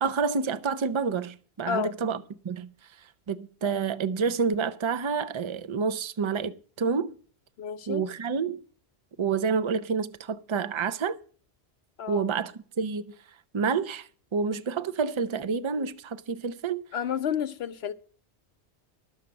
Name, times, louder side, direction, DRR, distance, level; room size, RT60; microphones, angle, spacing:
voice 1, 0.0-2.2 2.4-2.7 3.3-7.1 7.9-8.6 9.2-11.2 12.1-13.1 13.5-16.8, right 5 dB, 35° right, 0.5 m, -28 dB
voice 2, 7.6-8.1 12.0-12.2 16.9-17.9, left 8 dB, 70° left, 1.0 m, -30 dB
11.5 x 7.3 x 7.6 m
omnidirectional pair, 1.1 m